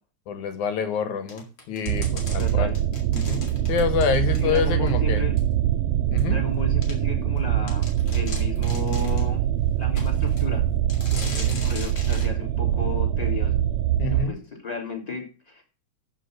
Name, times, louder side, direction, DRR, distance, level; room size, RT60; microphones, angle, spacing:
voice 1, 0.3-2.7 3.1-5.2 6.1-6.4 11.1-11.6 14.0-14.4, left 6 dB, 90° left, 9 dB, 2.9 m, -27 dB
sound 1, 1.3-4.9 5.4-5.5 6.2-6.3 6.8-7.0 7.4-7.5 7.7-9.3 10.0-10.5 10.9-12.3, left 3 dB, 45° left, 3.8 m, -39 dB
sound 2, 1.9-14.3, right 11 dB, 85° right, 1.3 m, -23 dB
voice 2, 2.4-2.8 4.3-5.4 6.3-9.4 9.8-10.6 11.2-13.6 14.0-15.6, left 4 dB, 15° left, 1 dB, 3.2 m, -34 dB
14.0 x 5.1 x 6.6 m, 0.35 s
omnidirectional pair, 3.3 m